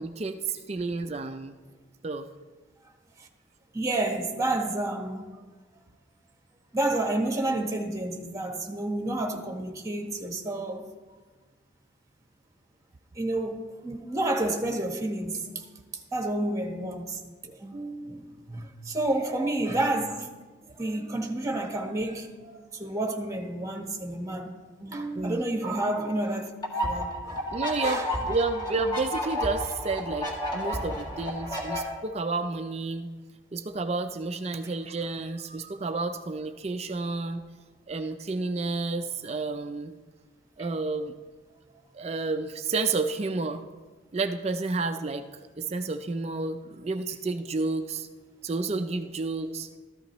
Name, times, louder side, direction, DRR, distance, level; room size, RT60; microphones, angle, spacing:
voice 1, 0.0-1.6 2.0-2.3 25.1-25.4 27.5-33.1 33.5-37.4 37.9-40.0 40.6-41.1 41.9-43.6 44.1-45.3 45.6-48.1 48.4-49.7, right 3 dB, 30° right, 0.4 m, -30 dB
voice 2, 3.7-5.3 6.7-10.9 13.1-15.6 15.9-20.3 20.8-24.5 24.8-26.5 26.8-27.5 27.8-28.1 34.6-34.7 40.6-40.7 44.8-44.9, right 2 dB, 15° right, 1.1 m, -30 dB
sound 1, 26.6-31.8, left 1 dB, 20° left, 1.9 m, -31 dB
14.0 x 13.5 x 3.0 m
head